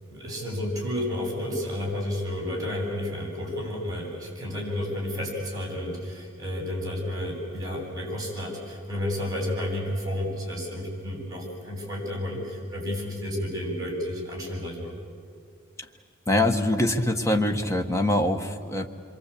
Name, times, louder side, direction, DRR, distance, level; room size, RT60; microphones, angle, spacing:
voice 1, 0.1-14.9, left 1 dB, 20° right, 0 dB, 7.9 m, -31 dB
voice 2, 16.3-18.9, left 1 dB, 15° left, 4 dB, 1.5 m, -24 dB
27.0 x 23.5 x 8.6 m, 2.3 s
head